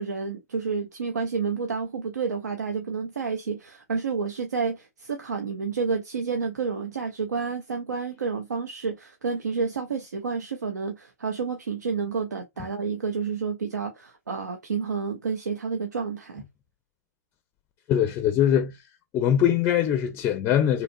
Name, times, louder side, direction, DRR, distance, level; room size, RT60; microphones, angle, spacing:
voice 1, 0.0-16.4, right 5 dB, 85° right, 0.5 m, -30 dB
voice 2, 17.9-18.8 19.1-20.8, left 10 dB, 25° left, 0.4 m, -22 dB
2.9 x 2.3 x 2.6 m
hypercardioid pair, 120°, 9 cm